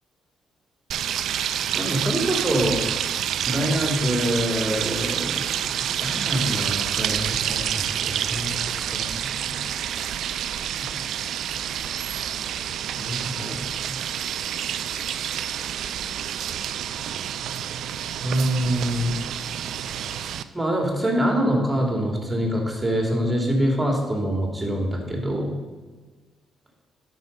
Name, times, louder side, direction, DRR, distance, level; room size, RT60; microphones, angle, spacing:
sound 1, 0.9-20.4, right 9 dB, 75° right, 0.4 m, -28 dB
voice 1, 1.7-2.8 3.5-5.4 6.0-8.5 8.9-9.6 13.0-14.1 18.2-19.2 20.5-25.6, equal, 15° right, 1 dB, 2.6 m, -25 dB
12.0 x 5.5 x 5.3 m, 1.4 s
cardioid pair, 90°, 0 cm